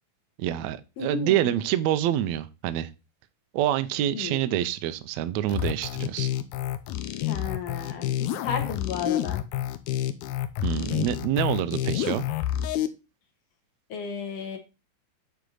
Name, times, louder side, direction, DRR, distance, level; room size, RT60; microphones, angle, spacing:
voice 1, 0.4-2.9 3.5-6.3 10.6-12.3, right 12 dB, 80° right, 1.6 m, -26 dB
voice 2, 1.0-1.5 4.1-4.6 7.3-8.1 8.4-9.4 13.9-14.6, left 6 dB, 60° left, 2.1 m, -33 dB
sound 1, 5.5-12.9, left 12 dB, 75° left, 1.8 m, -29 dB
8.3 x 4.6 x 3.9 m
omnidirectional pair, 3.8 m